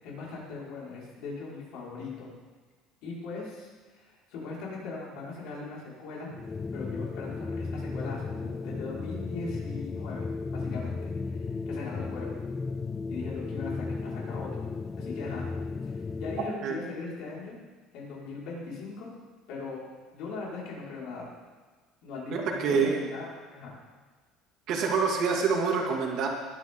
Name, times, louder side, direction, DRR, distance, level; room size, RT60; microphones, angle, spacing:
voice 1, 0.0-2.3 3.0-6.3 6.7-10.3 10.5-12.4 13.1-14.7 15.0-15.5 15.9-17.6 17.9-19.1 19.5-19.8 20.1-21.3 22.0-23.7, left 4 dB, 65° left, -5 dB, 5.6 m, -39 dB
sound 1, 6.3-16.6, left 4 dB, 20° left, 0.3 m, -35 dB
voice 2, 22.3-23.0 24.7-26.3, right 5 dB, 50° right, 0 dB, 2.6 m, -26 dB
21.5 x 11.0 x 4.0 m, 1.4 s
cardioid pair, 165°, 0 cm